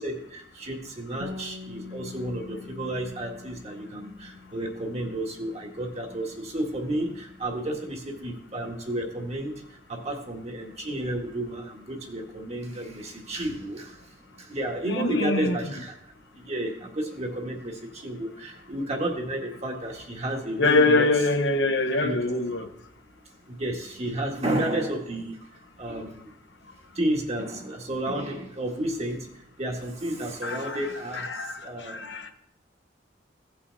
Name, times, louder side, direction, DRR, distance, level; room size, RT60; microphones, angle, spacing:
voice 1, 0.0-15.9 16.3-21.1 22.0-22.2 23.5-26.3 26.9-32.3, right 1 dB, 35° right, 1.7 m, -32 dB
Bass guitar, 1.2-7.5, left 3 dB, 65° right, 1.4 m, -45 dB
voice 2, 14.9-15.6 20.6-22.7 30.4-32.3, left 2 dB, 70° left, 1.0 m, -24 dB
17.0 x 5.7 x 4.1 m
head